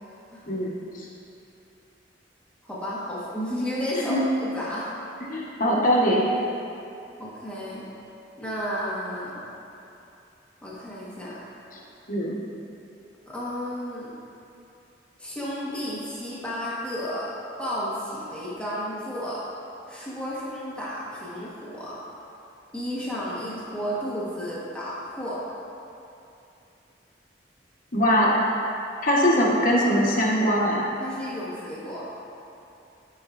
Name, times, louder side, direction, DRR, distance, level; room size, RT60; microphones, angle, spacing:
voice 1, 0.5-1.0 4.1-4.2 5.2-6.2 12.1-12.4 27.9-28.3 29.0-30.8, equal, 50° left, -5 dB, 1.2 m, -22 dB
voice 2, 2.6-4.9 7.2-7.8 8.4-9.4 10.6-11.4 13.3-14.1 15.2-17.3 17.6-19.4 19.9-22.0 22.7-25.4 31.0-32.1, equal, 5° left, -8 dB, 1.2 m, -32 dB
12.5 x 5.3 x 2.5 m, 2.8 s
head